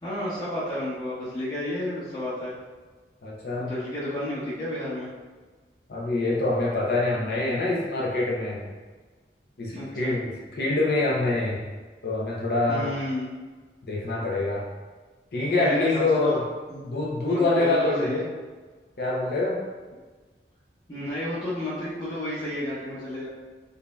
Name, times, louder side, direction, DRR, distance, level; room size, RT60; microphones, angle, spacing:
voice 1, 0.0-2.5 3.6-5.1 9.7-10.1 12.7-13.3 15.5-16.4 16.7-16.8 17.2-18.2 20.9-23.3, left 1 dB, 20° left, -12 dB, 1.1 m, -31 dB
voice 2, 3.2-3.7 5.9-8.6 9.6-11.6 12.0-12.9 13.9-14.7 15.3-16.4 16.8-18.3 19.0-19.6, left 2 dB, 60° left, -3 dB, 0.6 m, -25 dB
5.2 x 2.6 x 2.2 m, 1.4 s
head